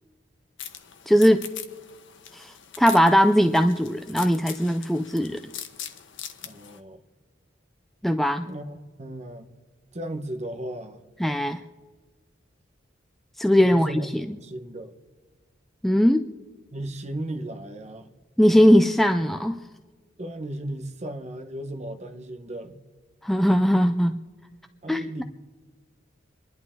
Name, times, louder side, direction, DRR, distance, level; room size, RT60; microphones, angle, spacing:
sound 1, 0.6-6.8, left 9 dB, 75° left, 1.2 m, -41 dB
voice 1, 1.1-1.5 2.3-5.4 8.0-8.5 11.2-11.6 13.4-13.9 15.8-16.3 18.4-19.6 23.2-24.2 24.9-25.2, equal, ahead, 0.3 m, -20 dB
voice 2, 6.4-7.0 8.4-9.5 9.9-11.0 13.6-14.1 14.4-14.9 16.7-18.1 20.2-22.8 24.8-25.2, right 1 dB, 35° right, 1.1 m, -35 dB
28.0 x 11.5 x 3.7 m
head